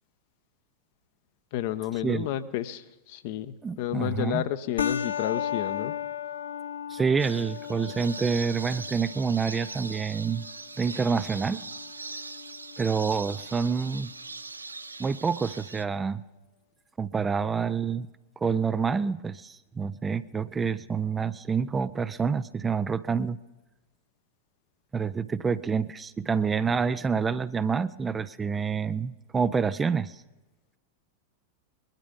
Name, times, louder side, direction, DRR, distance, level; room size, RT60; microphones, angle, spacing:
voice 1, 1.5-5.9, left 12 dB, 50° left, 12 dB, 0.9 m, -31 dB
voice 2, 3.6-4.4 6.9-10.4 10.8-11.6 12.8-14.1 15.0-16.2 17.0-18.1 18.4-23.4 24.9-30.1, right 5 dB, 15° right, 14 dB, 0.5 m, -27 dB
sound 1, 4.8-13.8, left 9 dB, 70° left, 0.6 m, -36 dB
sound 2, 7.2-15.8, right 3 dB, 80° right, 0.5 m, -41 dB
21.0 x 12.0 x 5.4 m, 1.1 s
figure-of-eight pair, 90°, 0 cm